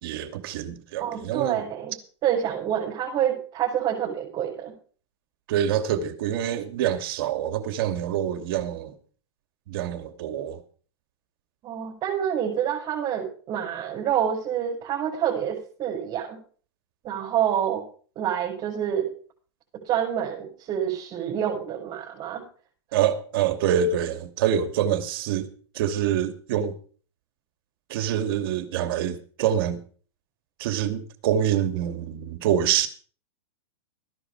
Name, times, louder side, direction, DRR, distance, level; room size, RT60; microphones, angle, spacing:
voice 1, 0.0-1.7 5.5-8.9 9.7-10.6 22.9-25.5 25.7-26.8 27.9-29.8 30.6-32.9, right 9 dB, 55° right, 2.7 m, -26 dB
voice 2, 1.0-1.9 2.2-4.7 11.6-16.4 17.0-17.8 18.2-19.1 19.8-22.4, right 9 dB, 30° right, 6.1 m, -27 dB
15.0 x 11.0 x 4.9 m
hypercardioid pair, 140°, 14 cm